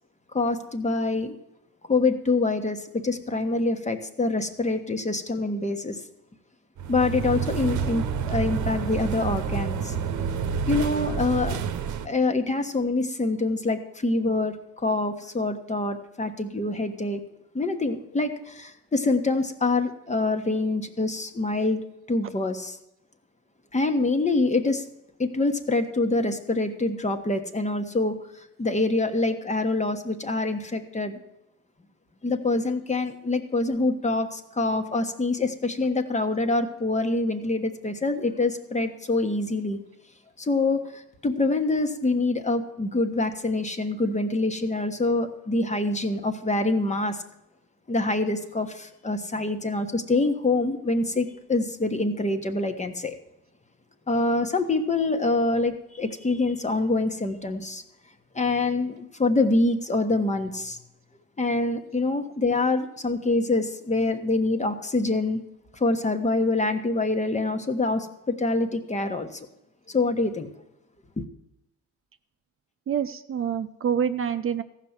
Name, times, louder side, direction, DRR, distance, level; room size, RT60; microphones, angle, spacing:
voice 1, 0.3-1.3 1.9-6.0 6.9-9.9 10.7-11.6 12.0-14.6 14.8-17.2 17.5-21.8 22.1-22.8 23.7-24.8 25.2-28.1 28.6-31.2 32.2-39.8 40.4-47.2 47.9-53.1 54.1-57.8 58.3-60.8 61.4-65.4 65.8-69.4 69.9-70.5 71.2-71.3, left 2 dB, 25° left, 7 dB, 1.3 m, -25 dB
sound 1, 6.8-12.1, right 7 dB, 70° right, 0.9 m, -28 dB
voice 2, 72.9-74.6, right 8 dB, 45° right, 9 dB, 0.7 m, -26 dB
14.5 x 5.9 x 8.1 m, 0.88 s
cardioid pair, 90°, 30 cm